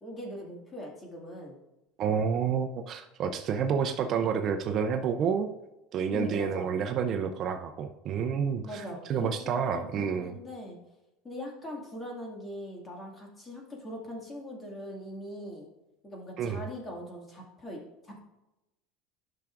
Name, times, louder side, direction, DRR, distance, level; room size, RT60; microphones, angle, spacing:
voice 1, 0.0-1.6 6.1-6.7 8.6-10.8 11.2-15.7 16.0-18.2, left 1 dB, 20° left, -1 dB, 2.1 m, -41 dB
voice 2, 2.0-5.5 5.9-8.8 9.1-10.3 16.4-16.6, right 6 dB, 40° right, 6 dB, 0.6 m, -29 dB
12.0 x 5.9 x 2.5 m, 0.95 s
supercardioid pair, 135°, 0 cm